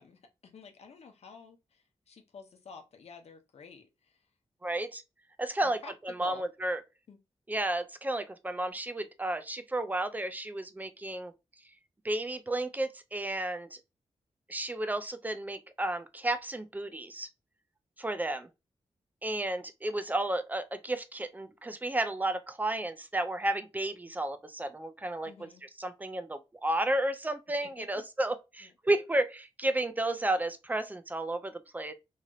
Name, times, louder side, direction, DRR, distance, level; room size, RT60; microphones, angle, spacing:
voice 1, 0.0-4.2 5.6-5.9 6.2-6.4 7.1-7.2 25.2-25.6 27.6-28.0 28.6-28.7, left 5 dB, 70° left, 0.8 m, -51 dB
voice 2, 4.6-5.0 5.4-6.8 7.5-11.3 12.0-13.8 14.5-17.3 18.0-18.5 19.2-31.9, right 1 dB, 15° right, 0.5 m, -32 dB
3.2 x 2.8 x 2.3 m
wide cardioid pair, 125°, 11 cm